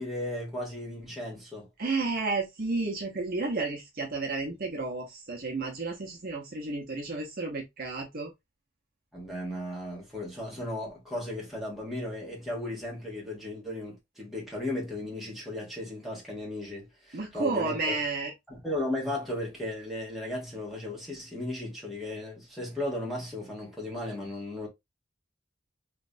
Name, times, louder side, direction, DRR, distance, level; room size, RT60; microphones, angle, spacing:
voice 1, 0.0-1.7 9.1-17.9 18.5-24.7, left 1 dB, ahead, 1.6 m, -35 dB
voice 2, 1.8-8.3 17.1-18.3, right 3 dB, 50° right, 0.9 m, -32 dB
3.3 x 3.1 x 2.5 m
head